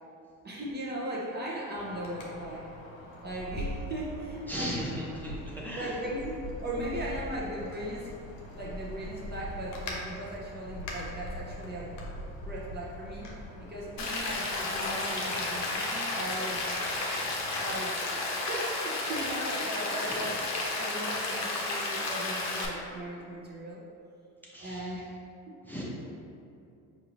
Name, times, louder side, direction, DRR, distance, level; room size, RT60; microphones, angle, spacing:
voice 1, 0.4-2.7 3.2-4.8 5.3-5.4 5.7-12.0 12.4-13.3 13.6-16.6 17.6-20.5 20.8-23.8 24.6-25.1 25.5-25.6, right 1 dB, 25° right, -4 dB, 0.8 m, -38 dB
Wind, 1.7-17.8, left 1 dB, 90° left, 0.8 m, -42 dB
voice 2, 4.5-6.0 20.0-20.2 24.5-25.0 25.6-25.8, equal, 5° left, -6 dB, 0.8 m, -37 dB
Rain, 14.0-22.7, left 2 dB, 45° left, 0.8 m, -32 dB
4.6 x 2.7 x 3.0 m, 2.5 s
supercardioid pair, 75°, 38 cm